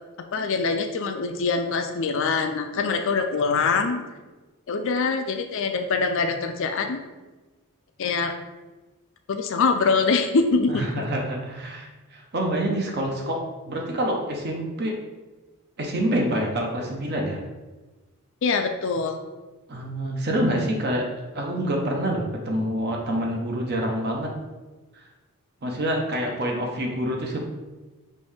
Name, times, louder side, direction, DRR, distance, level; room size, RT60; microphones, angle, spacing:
voice 1, 0.3-4.0 4.7-7.0 8.0-8.4 9.3-10.9 18.4-19.2, left 4 dB, 60° left, 6 dB, 0.4 m, -24 dB
voice 2, 10.7-14.9 15.8-17.4 19.7-21.1 21.3-24.3 24.9-25.0 25.6-27.4, right 1 dB, 45° right, 0 dB, 0.7 m, -27 dB
5.4 x 2.6 x 3.4 m, 1.2 s
head